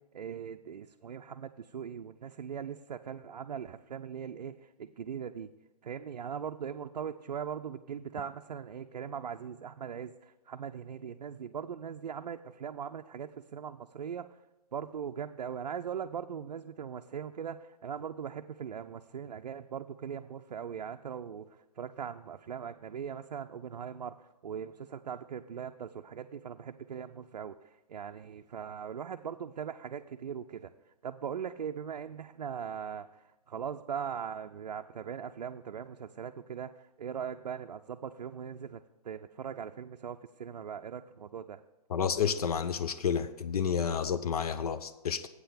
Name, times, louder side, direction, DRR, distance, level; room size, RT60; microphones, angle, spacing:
voice 1, 0.1-5.5 5.8-14.3 14.7-21.5 21.8-24.2 24.4-27.5 27.9-30.7 31.0-41.6, right 7 dB, 85° right, 6 dB, 0.4 m, -40 dB
voice 2, 41.9-45.3, left 7 dB, 65° left, 12 dB, 0.5 m, -30 dB
8.1 x 5.9 x 6.7 m, 1.0 s
hypercardioid pair, 140°, 21 cm